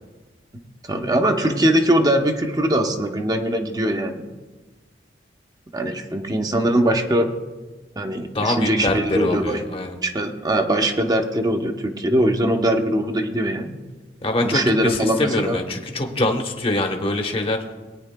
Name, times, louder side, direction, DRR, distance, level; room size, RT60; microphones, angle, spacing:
voice 1, 0.8-4.2 5.7-7.3 8.0-9.6 10.0-13.8 14.4-15.6, right 1 dB, 20° right, 5 dB, 0.8 m, -21 dB
voice 2, 8.2-10.0 14.2-17.7, left 2 dB, 30° left, 3 dB, 1.0 m, -24 dB
20.5 x 9.4 x 2.2 m, 1.3 s
head